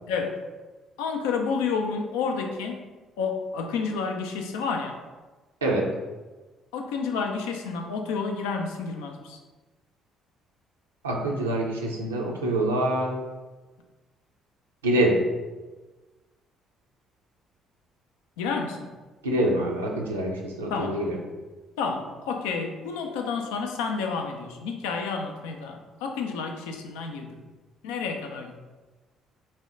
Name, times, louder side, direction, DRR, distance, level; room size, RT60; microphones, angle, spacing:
voice 1, 0.1-0.4 1.0-2.8 3.2-5.0 6.7-9.4 18.4-18.9 20.7-21.0 21.8-27.4 27.8-28.6, left 5 dB, 70° left, 4 dB, 0.4 m, -30 dB
voice 2, 11.0-13.2 14.8-15.2 19.2-21.2, right 1 dB, 80° right, -1 dB, 0.4 m, -25 dB
4.1 x 2.2 x 3.7 m, 1.2 s
figure-of-eight pair, 45°, 0 cm